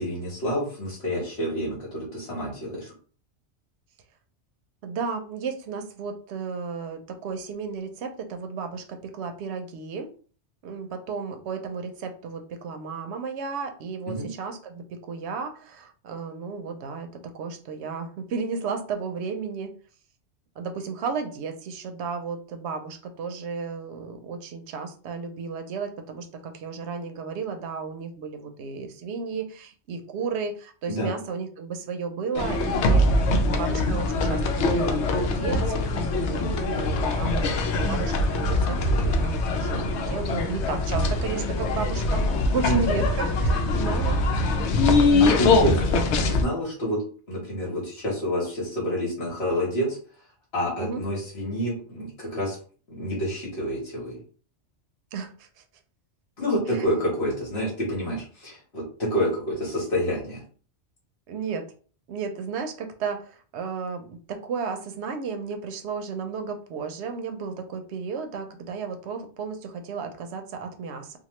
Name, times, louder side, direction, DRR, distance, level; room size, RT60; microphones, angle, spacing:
voice 1, 0.0-2.9 14.1-14.3 30.9-31.1 42.6-42.8 45.2-47.0 47.3-50.0 50.5-52.6 52.9-54.2 56.4-60.4, equal, 65° left, -5 dB, 1.4 m, -28 dB
voice 2, 4.8-10.1 10.6-19.7 20.6-42.2 42.5-44.2 45.5-46.0 50.8-51.0 55.1-55.5 56.7-56.8 61.3-61.7 62.1-71.2, right 5 dB, 75° right, 6 dB, 0.9 m, -33 dB
elisir backstage lyric edit, 32.4-46.4, left 2 dB, 80° left, 0.9 m, -23 dB
2.9 x 2.3 x 3.1 m, 0.41 s
omnidirectional pair, 1.2 m